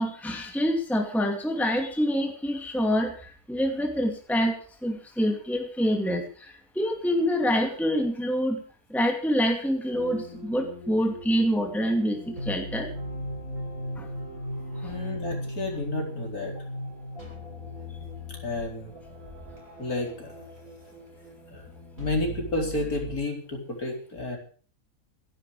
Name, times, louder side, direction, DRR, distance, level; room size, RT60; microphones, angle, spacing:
voice 1, 0.0-8.6 8.9-12.9 14.0-14.1 14.8-14.9, equal, ahead, 3 dB, 2.4 m, -26 dB
sound 1, 9.9-23.2, equal, 60° right, 7.8 m, -38 dB
voice 2, 14.8-16.5 18.4-18.9 19.8-20.4 21.5-21.6 22.0-24.4, left 2 dB, 80° left, 1 dB, 4.9 m, -31 dB
25.5 x 11.5 x 3.3 m, 0.41 s
omnidirectional pair, 1.5 m